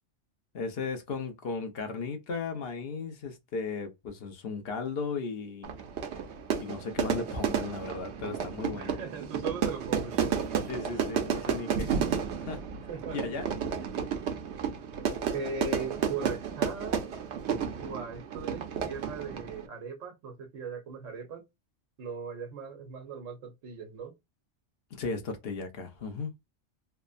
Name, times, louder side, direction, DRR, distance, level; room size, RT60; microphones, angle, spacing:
voice 1, 0.5-5.7 6.6-9.0 10.7-11.9 12.4-12.6 13.1-13.4 24.9-26.3, left 4 dB, 55° left, 0.9 m, -36 dB
Fire / Fireworks, 5.6-19.7, right 7 dB, 65° right, 0.9 m, -32 dB
voice 2, 8.7-10.1 12.9-13.2 13.8-14.1 15.3-17.0 17.8-21.4 22.0-24.1, right 5 dB, 80° right, 1.2 m, -39 dB
3.3 x 2.0 x 2.4 m
omnidirectional pair, 1.3 m